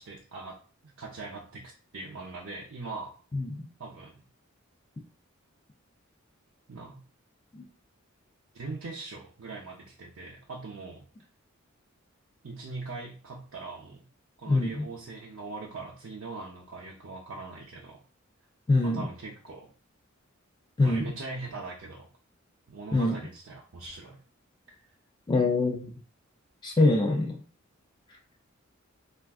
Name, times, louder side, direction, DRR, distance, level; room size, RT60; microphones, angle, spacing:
voice 1, 0.0-3.1 3.8-4.3 6.7-7.0 8.5-11.1 12.4-14.0 14.4-18.0 18.8-19.7 20.8-22.1 22.7-24.2 24.7-24.8, right 3 dB, 70° right, -3 dB, 0.6 m, -41 dB
voice 2, 14.5-14.9 18.7-19.0 20.8-21.1 22.9-23.2 25.3-25.9 26.6-27.4, left 2 dB, 20° left, 1 dB, 0.3 m, -24 dB
3.4 x 2.4 x 2.3 m, 0.39 s
head